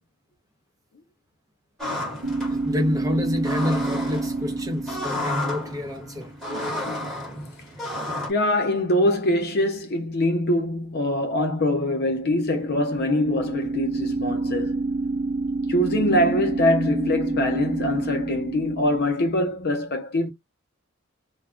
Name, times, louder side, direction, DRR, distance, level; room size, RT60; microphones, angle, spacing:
sound 1, 1.8-8.3, left 1 dB, ahead, 1.1 m, -32 dB
sound 2, 2.2-6.3 12.3-19.3, right 3 dB, 50° right, 0.7 m, -28 dB
voice 1, 2.5-6.3, left 1 dB, 15° right, 0.7 m, -28 dB
voice 2, 8.3-14.8 15.7-20.3, left 1 dB, 50° left, 0.5 m, -23 dB
2.3 x 2.1 x 3.6 m
head